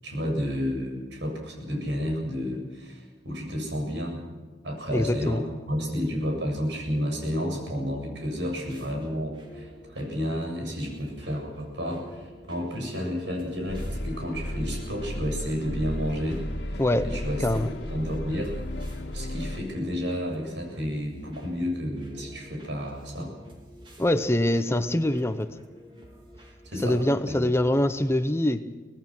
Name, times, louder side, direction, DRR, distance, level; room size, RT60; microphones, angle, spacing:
voice 1, 0.0-4.2 4.6-5.4 5.7-17.5 17.8-18.6 19.1-23.3 26.6-27.0 27.3-27.5 27.8-27.9, equal, 80° right, 2 dB, 7.6 m, -31 dB
voice 2, 4.9-5.4 16.8-17.7 24.0-25.5 26.8-28.6, left 1 dB, 15° left, 10 dB, 0.9 m, -24 dB
sound 1, 8.6-27.1, equal, 30° right, 3.9 m, -50 dB
sound 2, 13.7-19.6, left 1 dB, 75° left, 1.9 m, -34 dB
24.5 x 19.0 x 6.2 m, 1.3 s
head